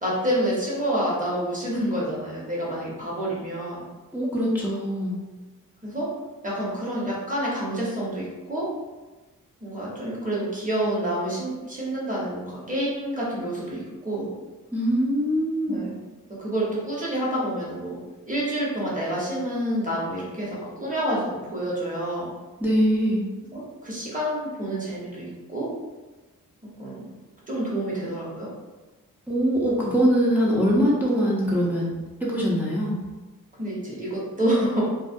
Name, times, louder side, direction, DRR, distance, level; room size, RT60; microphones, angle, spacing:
voice 1, 0.0-3.8 5.8-6.1 6.4-8.7 9.6-14.3 15.7-16.0 16.4-18.0 18.3-22.3 23.5-25.7 26.8-27.1 27.5-28.5 33.6-34.8, right 1 dB, 25° right, -6 dB, 1.0 m, -28 dB
voice 2, 4.1-5.2 14.7-15.8 22.6-23.2 29.3-31.9 32.2-33.0, equal, 5° right, -6 dB, 0.5 m, -22 dB
2.3 x 2.1 x 2.5 m, 1.2 s
cardioid pair, 70°, 35 cm